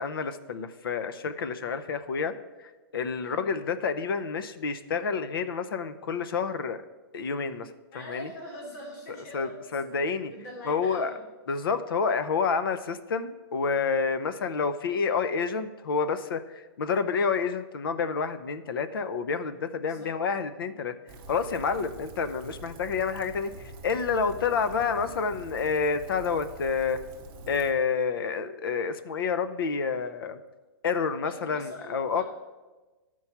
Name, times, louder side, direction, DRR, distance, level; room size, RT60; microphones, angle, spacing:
voice 1, 0.0-2.3 2.6-6.8 7.1-8.3 9.3-10.3 10.6-11.1 11.5-20.9 21.3-27.0 27.5-30.4 30.8-32.2, left 5 dB, 60° left, 11 dB, 0.7 m, -29 dB
voice 2, 7.9-9.9 10.3-11.2 19.8-20.1 31.2-32.2, equal, 40° left, -2 dB, 2.7 m, -43 dB
Rain, 21.1-27.7, right 3 dB, 20° right, 0.7 m, -45 dB
11.0 x 4.6 x 5.7 m, 1.2 s
hypercardioid pair, 175°, 13 cm